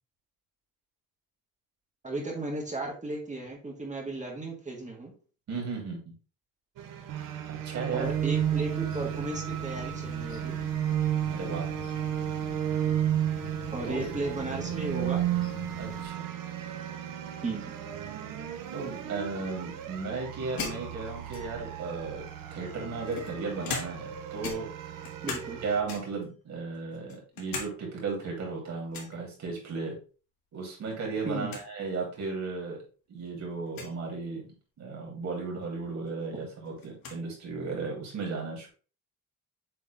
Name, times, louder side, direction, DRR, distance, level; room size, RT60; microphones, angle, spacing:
voice 1, 2.0-5.1 7.9-10.6 13.7-15.3 17.4-17.7 25.2-25.6 31.2-31.5, right 2 dB, 20° right, 0 dB, 1.6 m, -35 dB
voice 2, 5.5-6.1 7.5-8.1 11.2-11.7 13.8-14.0 15.8-16.3 18.7-22.2 22.5-24.7 25.6-30.0 30.5-32.8 33.1-34.5 34.8-38.7, right 4 dB, 55° right, -1 dB, 3.2 m, -35 dB
sound 1, 6.8-25.8, right 11 dB, 70° right, 1.0 m, -33 dB
sound 2, 8.0-16.1, left 9 dB, 55° left, 0.8 m, -45 dB
sound 3, 20.6-21.7 22.6-24.2 24.4-25.6 25.9-26.3 26.7-27.7 28.0-28.1 28.9-29.2 30.6-31.0 31.2-31.3 31.5-31.7 32.5-32.6 33.7-33.9 35.6-35.7 36.1-37.2, left 5 dB, 80° left, 2.0 m, -39 dB
7.9 x 3.6 x 3.4 m, 0.37 s
cardioid pair, 150°, 34 cm